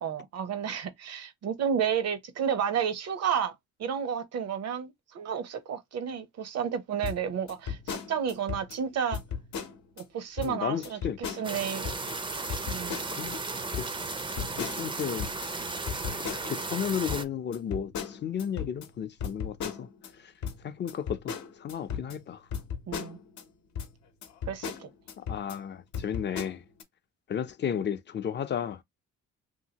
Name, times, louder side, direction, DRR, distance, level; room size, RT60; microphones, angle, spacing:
voice 1, 0.0-3.5 3.8-9.2 10.0-11.9 12.7-13.0 22.9-23.2 24.5-24.9, right 8 dB, 55° right, 0.7 m, -31 dB
sound 1, 7.0-8.8 9.1-10.0 10.4-10.5 10.8-12.1 12.5-13.4 13.7-16.7 17.1-20.1 20.4-23.4 23.8-23.9 24.2-25.6 25.9-26.8, left 7 dB, 70° left, 0.8 m, -37 dB
voice 2, 10.4-11.2 13.1-13.4 13.8-14.0 14.4-15.3 16.1-19.9 20.2-20.3 20.6-22.4 25.2-26.6 27.3-28.8, left 8 dB, 35° left, 0.5 m, -33 dB
sound 2, 11.4-17.2, right 3 dB, 15° right, 0.5 m, -35 dB
2.7 x 2.7 x 2.8 m
cardioid pair, 90°, 30 cm